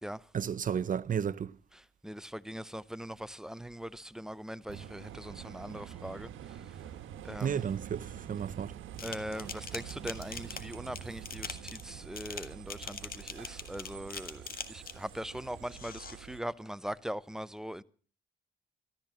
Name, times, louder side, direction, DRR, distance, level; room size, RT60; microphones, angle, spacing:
voice 1, 0.3-1.6 7.4-8.7, right 8 dB, 40° right, 0.7 m, -32 dB
voice 2, 1.7-6.6 7.2-7.7 9.0-17.8, equal, 5° right, 0.7 m, -41 dB
sound 1, 4.7-16.4, right 10 dB, 80° right, 1.4 m, -46 dB
sound 2, 9.0-15.1 15.7-16.2, left 6 dB, 45° left, 1.7 m, -43 dB
13.5 x 13.5 x 6.2 m
cardioid pair, 90°, 20 cm